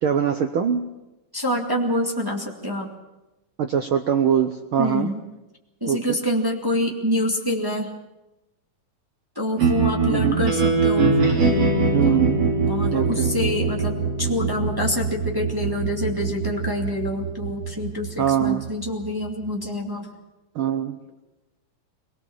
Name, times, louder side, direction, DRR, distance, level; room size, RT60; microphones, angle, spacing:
voice 1, 0.0-0.8 3.6-5.1 5.9-6.0 10.1-10.4 11.9-12.4 12.9-13.3 18.2-18.6 20.5-21.0, right 9 dB, 80° right, 7 dB, 1.2 m, -22 dB
voice 2, 1.3-2.9 4.8-5.2 5.8-7.9 9.3-11.2 12.7-20.1, left 1 dB, 10° right, 0 dB, 1.7 m, -26 dB
sound 1, 9.6-19.7, right 4 dB, 45° right, 4.6 m, -23 dB
23.0 x 19.0 x 7.2 m, 0.98 s
omnidirectional pair, 3.6 m